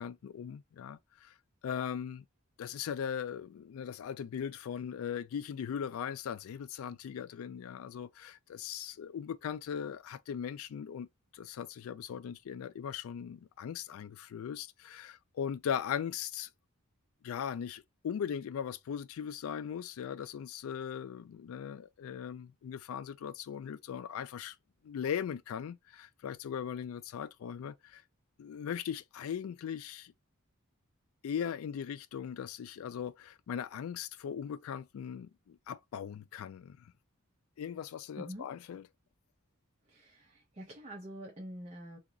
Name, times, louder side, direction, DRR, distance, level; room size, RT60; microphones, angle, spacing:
voice 1, 0.0-1.3 1.6-2.2 2.6-11.1 11.3-16.5 17.2-24.6 24.8-28.0 28.4-30.1 31.2-36.9 37.6-38.8, left 8 dB, 70° left, 0.3 m, -39 dB
voice 2, 38.2-38.5 39.9-42.0, equal, 30° right, 0.6 m, -46 dB
2.9 x 2.3 x 3.7 m
head